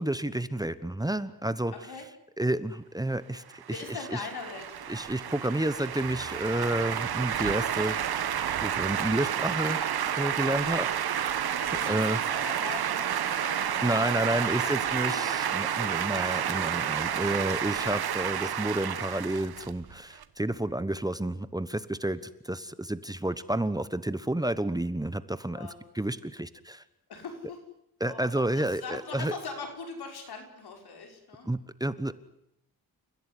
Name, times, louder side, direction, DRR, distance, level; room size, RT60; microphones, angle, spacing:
voice 1, 0.0-1.7 2.4-4.2 4.9-9.8 10.2-10.9 11.9-12.2 13.8-25.7 25.9-26.8 28.0-29.3 31.5-32.2, right 1 dB, 10° right, 14 dB, 1.1 m, -30 dB
voice 2, 1.7-2.1 3.7-4.8 11.6-15.2 16.2-16.5 25.5-25.8 27.1-27.6 28.1-31.5, left 4 dB, 80° left, 4 dB, 6.0 m, -41 dB
sound 1, 3.6-20.2, right 9 dB, 75° right, 1.4 m, -30 dB
29.5 x 16.0 x 9.9 m, 0.77 s
wide cardioid pair, 100°, 38 cm